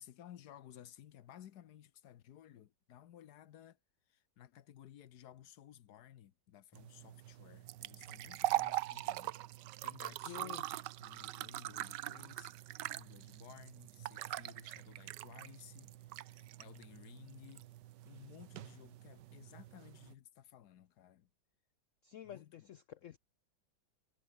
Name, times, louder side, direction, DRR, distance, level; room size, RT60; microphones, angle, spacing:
voice 1, 0.0-3.8 4.1-17.7 18.0-21.3 22.2-22.7, left 11 dB, 60° left, 1.3 m, -57 dB
sound 1, 6.7-20.1, right 15 dB, 75° right, 1.2 m, -42 dB
voice 2, 10.1-10.6 22.0-23.2, left 11 dB, 85° left, 0.6 m, -50 dB
omnidirectional pair, 2.1 m